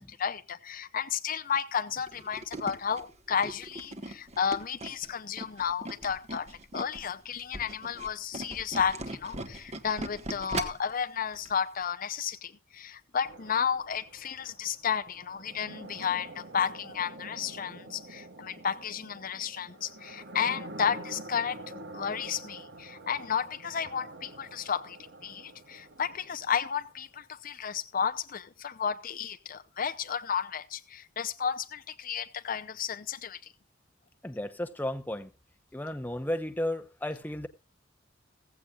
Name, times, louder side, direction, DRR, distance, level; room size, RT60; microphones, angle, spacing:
voice 1, 0.0-21.6 21.9-25.0 25.2-33.5, left 7 dB, 45° left, 0.7 m, -32 dB
Tools, 2.1-7.0 7.4-10.9 11.3-11.5 11.8-11.9, right 2 dB, 35° right, 1.5 m, -39 dB
sound 1, 13.2-27.1, right 2 dB, 65° right, 1.6 m, -47 dB
voice 2, 34.2-35.3 35.7-37.5, left 1 dB, 10° left, 0.9 m, -33 dB
16.0 x 15.5 x 2.4 m
head